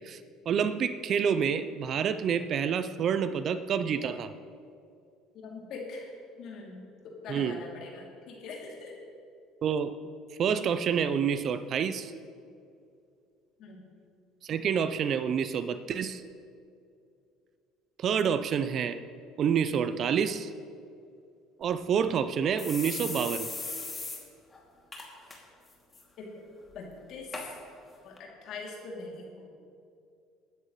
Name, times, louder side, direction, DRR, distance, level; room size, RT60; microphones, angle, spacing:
voice 1, 0.5-4.3 7.3-7.6 9.6-10.0 10.4-12.1 14.4-16.2 18.0-19.0 19.4-20.5 21.6-23.5, right 7 dB, 50° right, 12 dB, 0.6 m, -28 dB
voice 2, 5.3-6.1 6.4-8.9 13.6-13.9 26.2-26.4 26.7-27.6 28.0-29.5, left 3 dB, 60° left, -2 dB, 3.0 m, -43 dB
sound 1, 21.6-21.7 22.1-22.2 22.6-24.2 24.5-24.6 24.9-25.4 25.7-26.0 26.7-26.8 27.3-27.5 28.2-28.3, left 3 dB, 25° left, 2.7 m, -37 dB
20.0 x 10.0 x 3.2 m, 2.4 s
hypercardioid pair, 65°, 0 cm